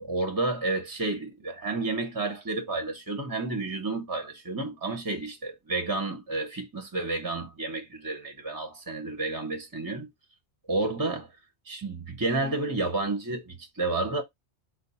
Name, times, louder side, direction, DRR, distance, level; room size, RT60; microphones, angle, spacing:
voice 1, 0.0-10.1 10.7-11.3 11.7-14.2, right 3 dB, 25° right, 0.5 m, -31 dB
4.7 x 2.1 x 4.1 m
omnidirectional pair, 1.2 m